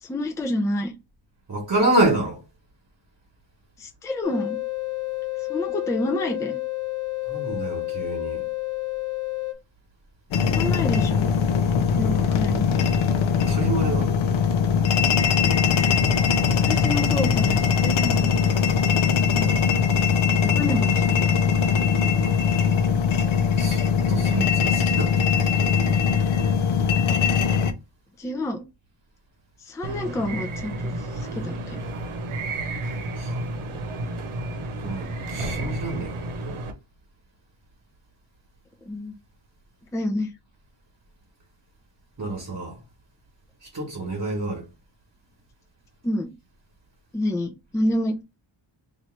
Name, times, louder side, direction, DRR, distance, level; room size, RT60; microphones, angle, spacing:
voice 1, 0.0-0.9 3.8-4.6 5.5-6.6 10.5-11.3 11.9-12.7 16.6-18.3 19.3-19.6 20.4-21.3 28.2-28.6 29.6-31.8 38.8-39.2 39.9-40.3 46.0-46.3 47.1-48.2, left 1 dB, 5° left, 0.4 m, -28 dB
voice 2, 1.5-2.4 7.2-8.4 13.5-14.1 22.2-22.6 23.6-26.2 33.1-33.5 34.8-36.2 42.2-42.8 43.6-44.7, right 2 dB, 40° right, 1.2 m, -28 dB
sound 1, 4.2-9.5, left 23 dB, 45° left, 0.9 m, -30 dB
sound 2, 10.3-27.7, left 6 dB, 75° left, 0.6 m, -21 dB
sound 3, 29.8-36.7, right 2 dB, 90° right, 1.0 m, -31 dB
3.0 x 2.7 x 4.4 m
wide cardioid pair, 165°, 49 cm